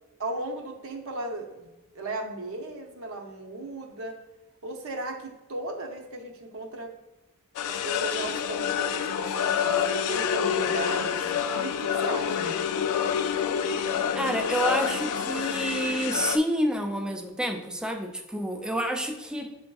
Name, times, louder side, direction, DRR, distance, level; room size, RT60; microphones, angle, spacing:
voice 1, 0.2-1.7 1.9-4.2 4.6-6.9 7.6-12.6, right 2 dB, 65° right, 3 dB, 0.6 m, -36 dB
sound 1, 7.6-16.4, left 8 dB, 85° left, 0.3 m, -27 dB
voice 2, 14.1-19.6, equal, 5° right, 4 dB, 0.3 m, -28 dB
7.5 x 2.5 x 2.3 m, 1.1 s
head